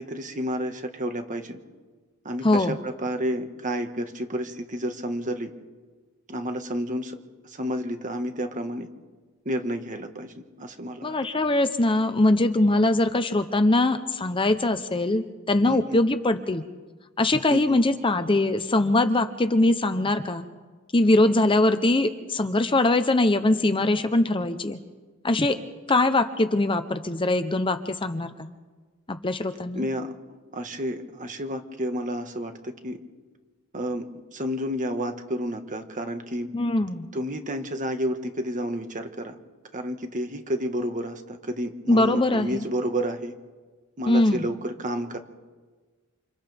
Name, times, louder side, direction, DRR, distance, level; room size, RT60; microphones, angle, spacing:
voice 1, 0.0-1.6 2.2-5.5 6.3-7.2 7.4-8.9 9.4-11.1 15.6-16.0 17.5-17.8 29.7-33.0 33.7-34.1 34.3-36.5 37.1-39.3 39.7-43.3 44.0-45.2, equal, 35° right, 6 dB, 1.6 m, -30 dB
voice 2, 2.4-2.7 11.0-16.6 17.2-20.5 20.9-24.8 25.2-25.6 25.9-28.5 29.1-29.8 36.5-37.1 41.9-42.6 44.1-44.5, left 2 dB, 25° left, 9 dB, 0.8 m, -22 dB
28.5 x 27.5 x 3.5 m, 1.4 s
head